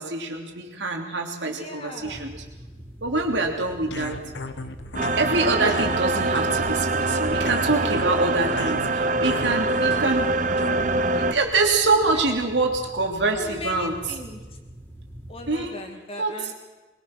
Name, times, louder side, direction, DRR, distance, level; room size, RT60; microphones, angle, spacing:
voice 1, 0.0-2.4 3.0-4.1 5.2-10.3 11.1-13.9 15.5-15.7 16.2-16.3, right 3 dB, 80° right, 2 dB, 3.2 m, -25 dB
voice 2, 1.4-2.2 12.1-12.3 13.3-14.4 15.3-16.5, left 2 dB, 30° left, 4 dB, 2.4 m, -39 dB
sound 1, 2.0-15.7, equal, 15° left, 3.4 m, -43 dB
sound 2, 3.9-11.0, left 3 dB, 75° left, 1.3 m, -37 dB
sound 3, 4.9-11.3, right 3 dB, 45° right, 0.9 m, -24 dB
22.0 x 21.5 x 6.1 m, 1.2 s
head